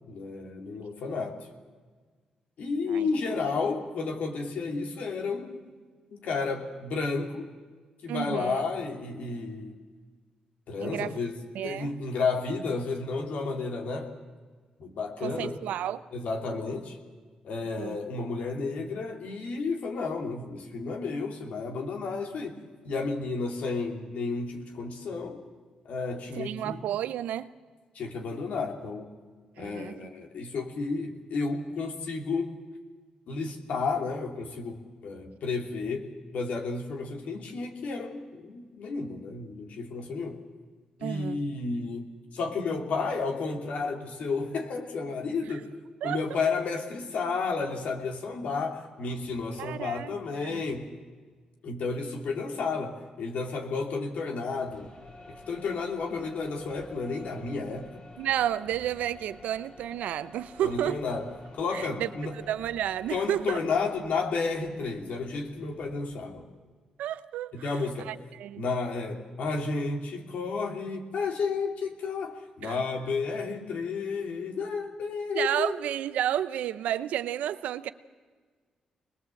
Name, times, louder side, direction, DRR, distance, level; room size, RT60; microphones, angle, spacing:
voice 1, 0.1-1.4 2.6-5.6 6.1-7.5 8.0-9.7 10.7-11.3 11.6-14.1 14.8-15.6 16.1-17.0 17.4-25.4 25.8-26.8 27.9-29.1 29.6-32.5 33.3-36.1 36.3-40.4 41.0-42.1 42.3-45.7 46.0-50.9 51.6-54.9 55.3-58.1 60.6-61.3 61.5-62.3 63.1-66.5 67.5-68.1 68.6-75.8, left 4 dB, 75° left, 3.0 m, -32 dB
voice 2, 8.1-8.6 10.8-11.2 11.5-11.9 15.2-16.0 17.8-18.0 26.4-27.5 29.6-29.9 41.0-41.4 46.0-46.2 49.6-50.1 50.4-50.6 58.2-61.0 61.7-62.1 62.3-63.6 67.0-67.6 68.1-68.6 72.6-72.8 75.3-77.9, right 11 dB, 85° right, 0.7 m, -31 dB
sound 1, 54.7-66.5, left 2 dB, 50° left, 6.1 m, -51 dB
24.5 x 20.5 x 7.8 m
cardioid pair, 65°, 2 cm